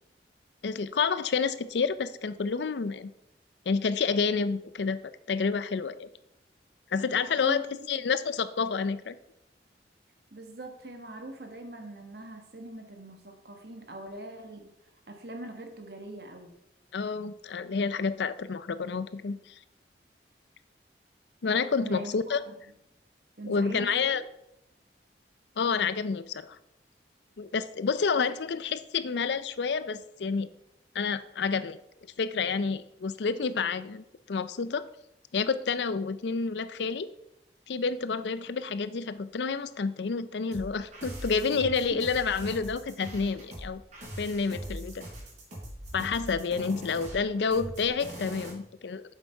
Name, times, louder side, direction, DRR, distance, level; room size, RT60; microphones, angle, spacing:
voice 1, 0.6-3.1 3.7-5.0 5.3-6.1 6.9-9.2 16.9-19.5 21.4-22.4 23.5-24.2 25.6-26.6 27.4-30.5 30.9-31.8 32.2-34.8 35.3-37.1 37.7-43.8 44.2-45.0 45.9-49.0, left 5 dB, 75° left, 14 dB, 0.5 m, -29 dB
voice 2, 7.3-8.0 10.3-14.7 15.1-16.5 21.8-22.5 23.4-24.1, right 1 dB, 60° right, 4 dB, 1.5 m, -42 dB
sound 1, 40.5-48.5, equal, 40° right, 3.8 m, -41 dB
8.4 x 7.2 x 4.5 m, 0.82 s
head